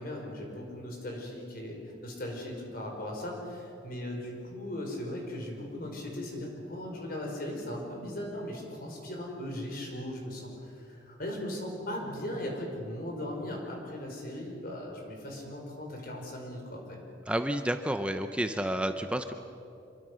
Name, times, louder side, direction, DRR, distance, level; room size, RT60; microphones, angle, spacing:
voice 1, 0.0-17.0, left 1 dB, 50° left, 0 dB, 5.3 m, -38 dB
voice 2, 17.3-19.3, right 1 dB, 5° right, 7 dB, 0.7 m, -30 dB
27.0 x 23.0 x 6.4 m, 2.7 s
head